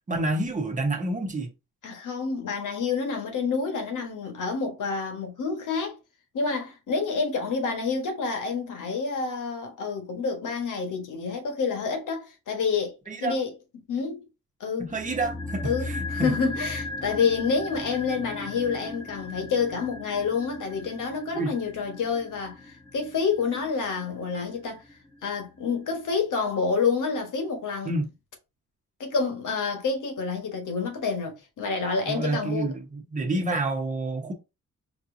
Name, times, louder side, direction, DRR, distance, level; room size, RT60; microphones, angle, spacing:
voice 1, 0.1-1.5 13.1-13.4 14.8-16.3 21.3-21.5 27.8-28.1 32.1-34.3, right 2 dB, 25° right, 1.1 m, -28 dB
voice 2, 1.8-6.0 6.3-13.5 13.9-14.2 14.6-14.9 15.6-24.8 25.2-27.9 29.0-32.7, left 5 dB, 80° left, 1.4 m, -28 dB
sound 1, 14.9-25.1 25.4-25.5, left 2 dB, 5° left, 1.1 m, -37 dB
5.1 x 2.9 x 2.6 m
wide cardioid pair, 125°, 31 cm